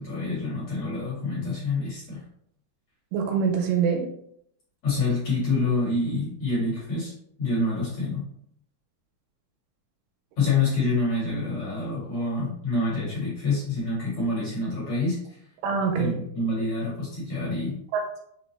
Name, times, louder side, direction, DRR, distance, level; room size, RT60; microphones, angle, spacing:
voice 1, 0.0-2.2 4.8-7.1 7.4-8.2 10.4-15.4 16.0-17.8, left 3 dB, 55° left, -7 dB, 2.2 m, -27 dB
voice 2, 3.1-4.1 15.6-16.2 17.9-18.2, right 6 dB, 80° right, 2 dB, 2.4 m, -25 dB
6.1 x 2.5 x 2.9 m, 0.71 s
omnidirectional pair, 4.7 m